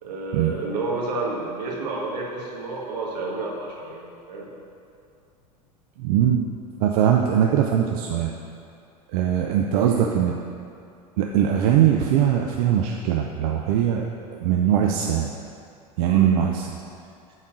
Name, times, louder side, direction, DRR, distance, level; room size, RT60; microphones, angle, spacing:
voice 1, 0.0-4.5 9.7-10.1 16.0-16.2, right 3 dB, 80° right, -3 dB, 1.8 m, -30 dB
voice 2, 6.0-6.4 6.8-8.3 9.1-10.4 11.2-15.3 16.0-16.7, right 9 dB, 65° right, 1 dB, 0.6 m, -21 dB
8.9 x 4.2 x 6.3 m, 2.5 s
hypercardioid pair, 90°, 21 cm